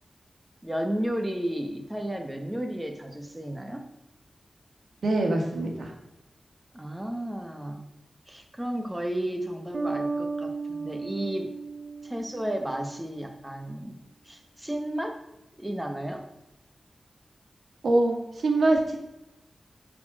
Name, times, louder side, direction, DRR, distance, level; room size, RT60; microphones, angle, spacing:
voice 1, 0.6-3.8 6.7-7.9 8.3-11.5 12.0-14.0 14.2-15.2 15.6-16.2, right 1 dB, 10° right, 4 dB, 1.2 m, -33 dB
voice 2, 5.0-5.9 17.8-18.2 18.4-19.0, right 2 dB, 85° right, 2 dB, 1.8 m, -23 dB
Bass guitar, 9.7-13.3, right 4 dB, 55° right, 1.0 m, -35 dB
11.0 x 4.3 x 6.3 m, 0.90 s
wide cardioid pair, 85°, 0 cm